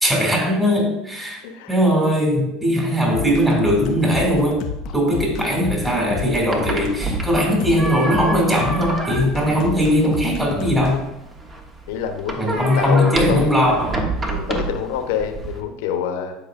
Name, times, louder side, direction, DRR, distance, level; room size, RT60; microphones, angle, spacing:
voice 1, 0.0-1.4 1.7-4.6 4.9-11.0 12.4-14.0, equal, 10° right, -2 dB, 2.4 m, -19 dB
voice 2, 1.4-1.8 11.9-13.5 14.3-16.3, left 8 dB, 80° left, 6 dB, 0.9 m, -26 dB
sound 1, 3.1-11.0, left 7 dB, 60° left, 0.5 m, -30 dB
sound 2, 6.1-15.6, right 2 dB, 25° right, 1.2 m, -29 dB
11.0 x 4.9 x 2.5 m, 0.89 s
hypercardioid pair, 90°, 0 cm